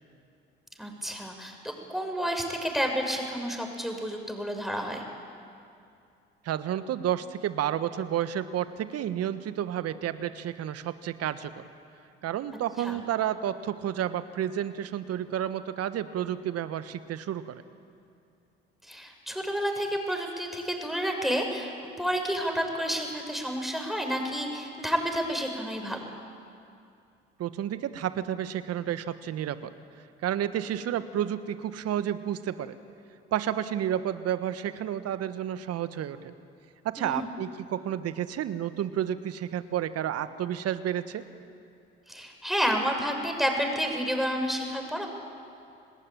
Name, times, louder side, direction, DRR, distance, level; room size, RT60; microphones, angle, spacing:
voice 1, 0.8-5.0 12.8-13.0 18.8-21.7 22.0-26.0 37.0-37.3 42.1-45.1, equal, ahead, 2 dB, 6.3 m, -30 dB
voice 2, 6.4-11.7 12.2-17.6 27.4-29.7 30.2-32.8 33.3-36.3 36.8-41.2, right 10 dB, 55° right, 12 dB, 1.5 m, -31 dB
28.0 x 19.5 x 9.1 m, 2.5 s
hypercardioid pair, 55°, 29 cm